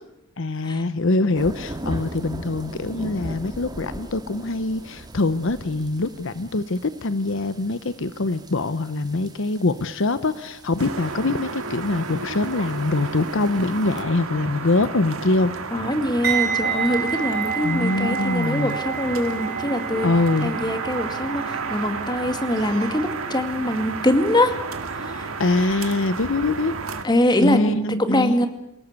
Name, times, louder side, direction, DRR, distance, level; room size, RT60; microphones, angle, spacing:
voice 1, 0.4-15.5 17.6-18.8 20.0-20.5 25.4-26.7 27.4-28.5, left 2 dB, 65° left, 13 dB, 0.9 m, -23 dB
sound 1, 1.3-14.0, right 1 dB, 20° right, 2.1 m, -39 dB
sound 2, 10.8-27.0, right 4 dB, 85° right, 2.1 m, -32 dB
voice 2, 15.7-20.1 20.4-24.6 25.0-25.3 27.0-28.5, left 1 dB, 20° left, 7 dB, 2.3 m, -23 dB
sound 3, 16.2-25.2 25.5-25.8, right 7 dB, 50° right, 3.2 m, -30 dB
28.0 x 18.0 x 8.2 m, 0.82 s
head